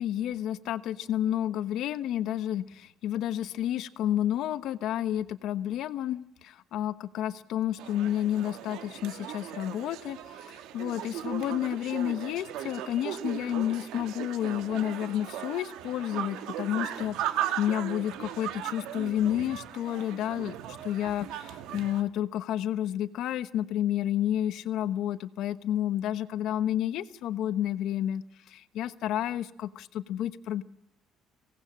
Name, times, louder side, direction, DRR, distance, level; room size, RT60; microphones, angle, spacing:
voice 1, 0.0-10.2 10.5-20.6 20.8-30.6, left 11 dB, 60° left, 13 dB, 1.1 m, -30 dB
sound 1, 7.8-22.0, right 11 dB, 85° right, 1.8 m, -37 dB
24.5 x 18.0 x 7.6 m, 0.83 s
cardioid pair, 175°, 0 cm